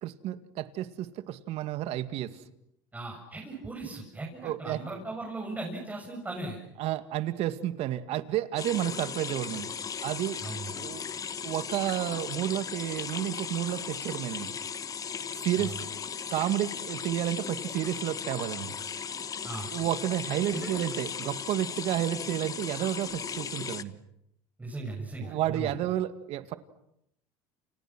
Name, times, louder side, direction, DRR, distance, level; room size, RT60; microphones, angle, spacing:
voice 1, 0.0-2.3 4.4-5.0 6.8-9.7 10.0-10.4 10.7-11.1 11.4-14.5 15.4-15.7 16.3-18.8 19.7-24.0 25.2-26.5, right 13 dB, 55° right, 11 dB, 2.1 m, -31 dB
voice 2, 2.9-6.6 10.4-10.7 15.6-15.8 19.4-19.7 20.5-20.8 24.6-25.8, right 2 dB, 15° right, -1 dB, 7.7 m, -38 dB
sound 1, 8.6-23.8, left 7 dB, 30° left, 1.3 m, -37 dB
30.0 x 29.5 x 6.2 m, 0.79 s
supercardioid pair, 110°, 12 cm